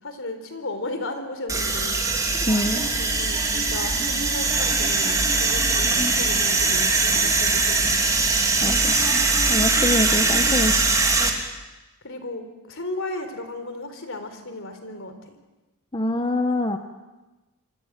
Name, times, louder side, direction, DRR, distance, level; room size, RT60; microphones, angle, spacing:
voice 1, 0.0-2.0 3.0-8.0 12.0-15.4, left 2 dB, 65° left, 8 dB, 4.0 m, -35 dB
sound 1, 1.5-11.3, right 3 dB, 15° right, 3.1 m, -21 dB
voice 2, 2.5-2.8 8.6-9.0 9.5-11.0 15.9-16.8, left 1 dB, 25° left, 6 dB, 1.2 m, -25 dB
27.5 x 24.0 x 7.6 m, 1.1 s
head